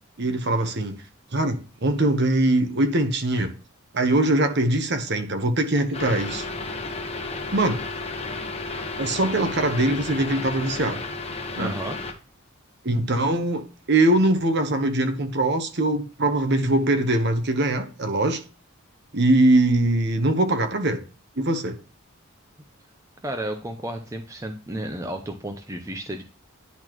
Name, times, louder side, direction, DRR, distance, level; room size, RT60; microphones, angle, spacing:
voice 1, 0.2-1.0 1.3-3.5 3.9-6.5 7.5-7.8 9.0-11.0 11.6-11.7 12.8-18.4 19.1-21.0 21.4-21.8, right 1 dB, 50° right, 1.0 m, -22 dB
sound 1, 5.9-12.1, left 3 dB, 25° left, 1.0 m, -32 dB
voice 2, 11.6-12.0 23.2-26.2, right 1 dB, 15° right, 0.6 m, -32 dB
10.5 x 4.3 x 3.0 m
head